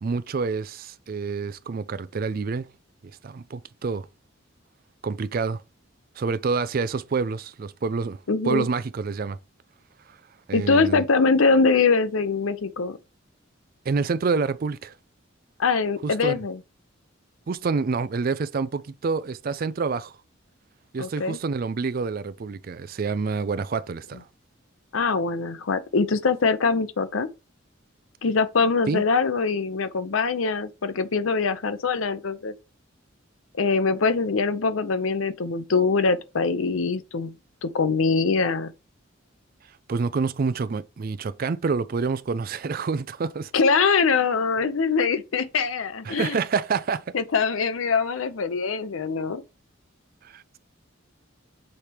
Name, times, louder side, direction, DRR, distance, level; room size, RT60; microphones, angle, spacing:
voice 1, 0.0-2.7 3.2-4.1 5.0-5.6 6.2-8.2 8.5-9.4 10.1-10.2 10.5-11.1 13.9-14.9 16.0-16.4 17.5-20.2 20.9-24.3 28.9-29.0 39.9-43.5 46.0-47.1 50.2-50.6, right 4 dB, 45° right, 0.4 m, -27 dB
voice 2, 8.3-8.7 10.5-13.0 15.6-16.6 21.0-21.4 24.9-27.3 28.2-32.5 33.6-37.3 37.6-38.7 43.5-46.4 47.1-49.4, left 4 dB, 85° left, 0.7 m, -23 dB
6.4 x 4.3 x 3.4 m
head